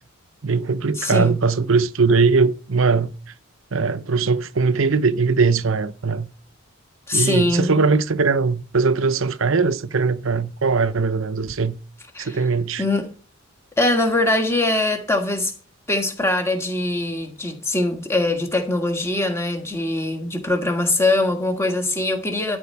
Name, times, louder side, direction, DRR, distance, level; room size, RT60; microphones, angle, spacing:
voice 1, 0.4-3.1 3.7-6.3 7.1-11.8 12.2-12.8, right 4 dB, 65° right, 0.7 m, -20 dB
voice 2, 0.9-1.4 7.1-7.8 12.1-12.5 12.8-13.1 13.8-15.5 15.9-22.6, left 2 dB, 10° left, 1.7 m, -22 dB
13.0 x 4.4 x 8.4 m
head